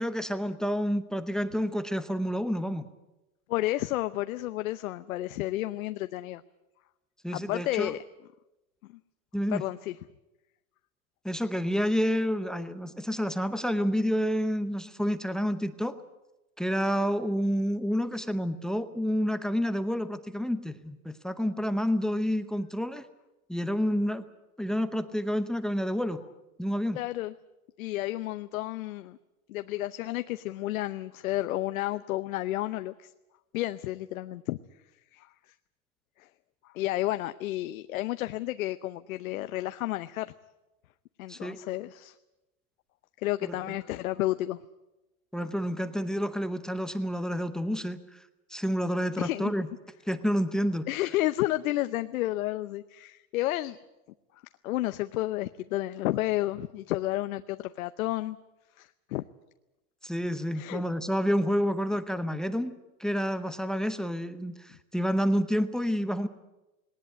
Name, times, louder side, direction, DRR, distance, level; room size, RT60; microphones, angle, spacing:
voice 1, 0.0-2.9 7.2-7.9 9.3-9.6 11.2-16.0 16.6-23.0 23.5-24.3 24.6-26.2 26.6-27.0 41.3-41.6 43.4-43.8 45.3-48.2 48.5-49.7 50.1-50.9 60.0-62.7 63.0-66.3, equal, ahead, 12 dB, 0.8 m, -29 dB
voice 2, 3.5-6.4 7.3-8.0 8.8-8.9 9.5-10.0 26.9-27.3 27.8-29.2 29.5-33.1 33.5-34.6 35.1-35.3 36.2-36.3 36.6-40.3 41.2-42.2 43.2-44.6 49.2-49.5 50.9-53.8 54.6-58.4 58.8-59.2 60.5-60.8, left 16 dB, 70° left, 11 dB, 0.8 m, -31 dB
19.0 x 19.0 x 9.0 m, 1.0 s
hypercardioid pair, 130°, 43 cm